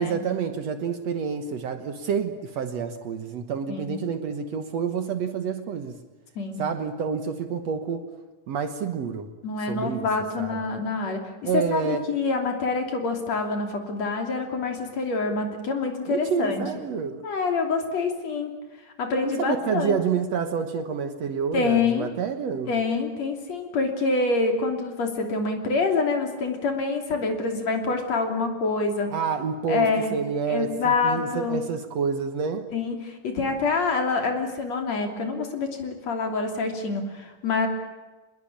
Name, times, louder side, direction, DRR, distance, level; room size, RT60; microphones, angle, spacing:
voice 1, 0.0-6.0 6.6-8.1 8.5-9.3 9.6-10.1 10.4-10.7 11.4-12.1 16.1-17.3 19.2-22.7 29.1-32.7, right 6 dB, 60° right, 8 dB, 2.2 m, -28 dB
voice 2, 9.4-11.2 11.5-16.6 17.2-18.5 19.0-20.0 21.5-22.1 22.7-29.1 29.7-30.1 30.5-31.6 32.7-37.7, left 4 dB, 55° left, 4 dB, 4.2 m, -26 dB
26.0 x 21.0 x 8.7 m, 1.1 s
omnidirectional pair, 3.8 m